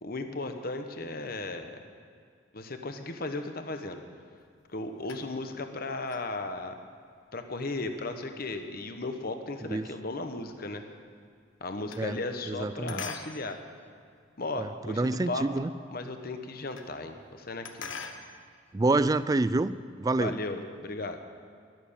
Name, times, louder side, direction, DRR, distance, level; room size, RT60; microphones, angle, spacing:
voice 1, 0.0-1.8 2.5-4.0 4.7-6.7 7.3-10.9 11.6-13.6 14.4-15.5 15.9-17.9 20.2-21.2, left 2 dB, 50° left, 7 dB, 1.0 m, -36 dB
sound 1, 4.4-5.6 6.0-10.5 10.8-12.6 12.9-14.9 15.4-15.5 15.7-15.8 16.0-17.0 17.3-18.3, left 5 dB, 75° left, 1.2 m, -45 dB
voice 2, 12.5-13.0 14.6-15.7 18.7-20.4, right 2 dB, 20° right, 15 dB, 0.3 m, -27 dB
12.0 x 12.0 x 8.7 m, 2.1 s
head